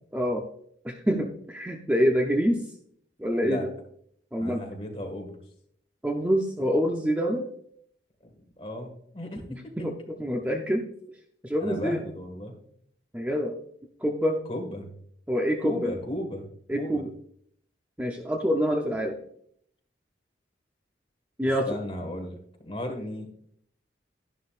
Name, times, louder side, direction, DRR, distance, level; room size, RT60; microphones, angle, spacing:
voice 1, 0.1-0.4 0.8-2.6 3.2-3.7 4.3-4.7 6.0-7.5 9.8-10.8 11.4-12.0 13.1-13.5 14.0-14.4 15.3-15.9 16.7-17.1 18.0-19.2 21.4-21.7, equal, 10° right, 2 dB, 0.6 m, -26 dB
voice 2, 4.4-5.4 8.2-9.7 11.6-12.5 14.5-14.9 15.6-17.0 21.7-23.3, left 1 dB, 30° left, 3 dB, 1.8 m, -35 dB
11.5 x 11.0 x 2.5 m, 0.66 s
head